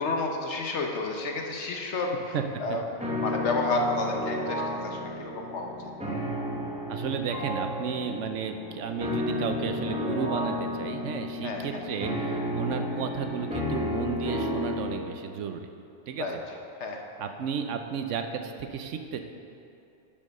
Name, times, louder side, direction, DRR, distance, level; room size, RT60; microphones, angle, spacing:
voice 1, 0.0-2.8 3.2-5.7 11.4-11.8 16.2-16.3 16.8-17.0, left 3 dB, 70° left, 2 dB, 1.3 m, -30 dB
sound 1, 3.0-15.0, left 1 dB, 5° right, 1.0 m, -32 dB
voice 2, 6.9-15.7 16.1-16.4 17.2-19.2, right 6 dB, 90° right, 6 dB, 1.0 m, -33 dB
11.0 x 5.6 x 5.3 m, 2.6 s
omnidirectional pair, 1.2 m